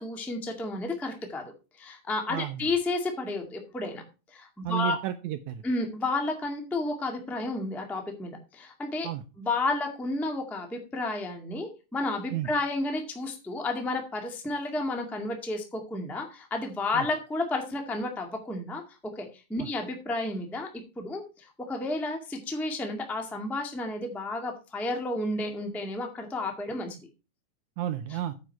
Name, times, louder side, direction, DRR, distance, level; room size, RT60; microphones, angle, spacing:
voice 1, 0.0-1.5 1.8-4.0 4.3-5.0 5.6-9.1 9.4-18.8 19.1-27.1, left 2 dB, ahead, 3 dB, 0.7 m, -32 dB
voice 2, 2.3-2.7 4.6-5.6 9.0-9.2 12.3-12.5 16.9-17.1 19.6-19.7 27.8-28.3, right 11 dB, 85° right, 9 dB, 1.7 m, -32 dB
9.0 x 7.1 x 4.6 m, 0.31 s
omnidirectional pair, 4.0 m